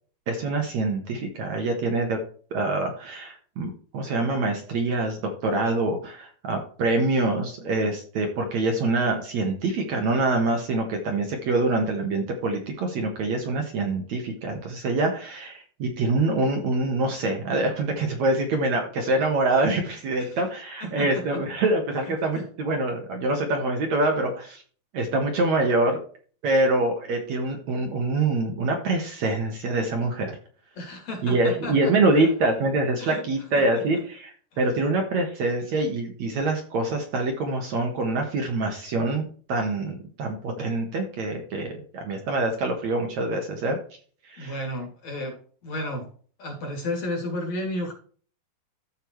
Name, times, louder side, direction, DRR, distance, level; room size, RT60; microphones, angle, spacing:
voice 1, 0.3-2.2 2.5-24.6 24.9-26.0 26.4-30.4 31.2-43.8 44.2-44.6, right 2 dB, 55° right, 3 dB, 2.2 m, -25 dB
voice 2, 20.8-21.4 22.0-22.5 30.8-32.3 33.0-33.2 33.6-33.8 34.5-34.6 44.4-46.1 46.4-47.9, left 1 dB, 45° left, 2 dB, 3.5 m, -33 dB
14.5 x 5.6 x 3.2 m, 0.43 s
omnidirectional pair, 4.6 m